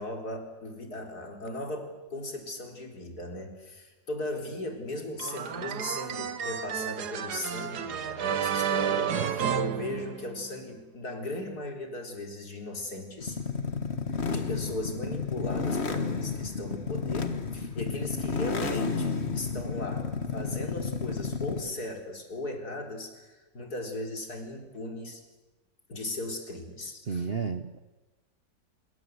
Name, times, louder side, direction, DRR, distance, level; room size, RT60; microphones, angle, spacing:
voice 1, 0.0-13.4 14.3-25.2 25.9-27.3, left 1 dB, 55° left, 4 dB, 4.4 m, -37 dB
sound 1, 5.2-10.6, right 8 dB, 60° right, 1.7 m, -31 dB
sound 2, 13.2-21.8, left 5 dB, 35° left, 1.8 m, -32 dB
voice 2, 27.0-27.8, right 5 dB, 40° right, 10 dB, 0.9 m, -32 dB
26.0 x 23.0 x 8.1 m, 1.2 s
omnidirectional pair, 2.0 m